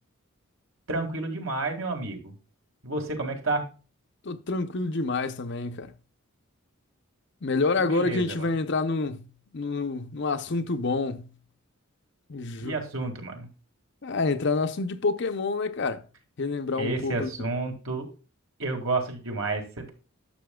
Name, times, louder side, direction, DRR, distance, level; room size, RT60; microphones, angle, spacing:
voice 1, 0.9-2.3 2.8-3.7 7.9-8.5 12.6-13.5 16.8-18.1 18.6-19.9, right 3 dB, 65° right, 2.1 m, -30 dB
voice 2, 4.2-5.9 7.4-9.3 9.5-11.3 12.3-12.8 14.0-16.0 16.4-17.3, left 3 dB, 55° left, 0.7 m, -28 dB
11.5 x 6.7 x 2.3 m
head